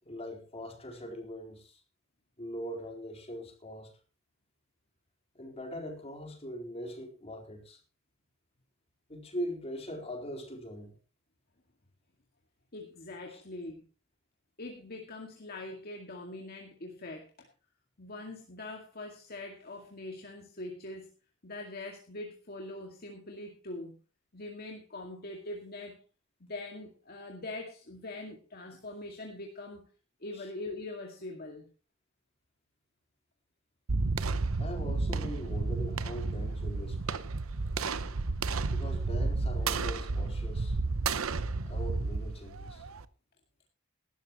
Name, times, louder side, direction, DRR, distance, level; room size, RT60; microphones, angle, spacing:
voice 1, 0.0-1.8 2.4-3.9 5.3-7.8 9.1-10.9 13.3-13.4 30.3-30.5 34.6-37.3 38.7-40.8 41.6-42.8, equal, 30° left, 4.2 m, -41 dB
voice 2, 12.7-13.9 14.6-17.5 18.0-21.1 21.4-24.0 24.3-26.0 26.5-29.8 30.2-31.7, left 2 dB, 50° left, 2.2 m, -43 dB
sound 1, 33.9-43.0, right 3 dB, 75° right, 0.8 m, -32 dB
19.0 x 12.5 x 3.1 m
head